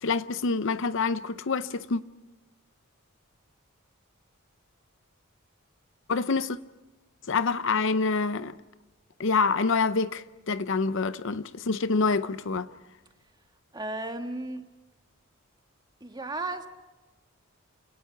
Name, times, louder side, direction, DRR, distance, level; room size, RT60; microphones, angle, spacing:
voice 1, 0.0-2.0 6.1-6.6 7.3-8.5 9.2-12.7, left 4 dB, 60° left, 0.7 m, -26 dB
voice 2, 13.7-14.8 16.0-16.7, right 2 dB, 20° right, 1.4 m, -34 dB
29.0 x 18.5 x 5.8 m
head